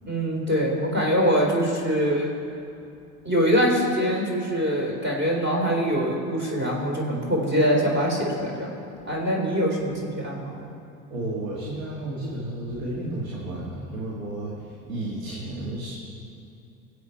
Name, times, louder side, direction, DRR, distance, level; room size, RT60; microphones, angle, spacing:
voice 1, 0.0-2.3 3.2-8.7 9.0-10.7, equal, 25° right, -1 dB, 3.9 m, -23 dB
voice 2, 11.1-15.9, right 1 dB, 80° right, -5 dB, 2.6 m, -32 dB
22.0 x 8.2 x 4.7 m, 2.6 s
hypercardioid pair, 80°, 41 cm